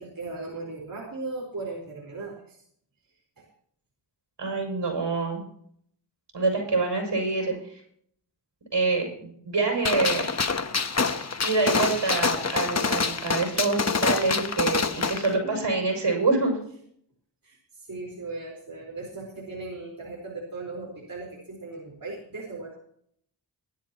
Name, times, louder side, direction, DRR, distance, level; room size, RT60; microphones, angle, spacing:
voice 1, 0.0-2.6 3.4-3.5 7.4-7.6 15.2-15.8 17.4-22.8, right 3 dB, 50° right, -2 dB, 4.6 m, -38 dB
voice 2, 4.4-5.4 6.3-7.8 8.7-10.3 11.4-16.6, right 3 dB, 70° right, 1 dB, 7.0 m, -26 dB
Gunshot gunfire, 9.8-15.3, left 4 dB, 35° left, 1.1 m, -26 dB
20.0 x 12.5 x 3.0 m, 0.65 s
cardioid pair, 50°, 44 cm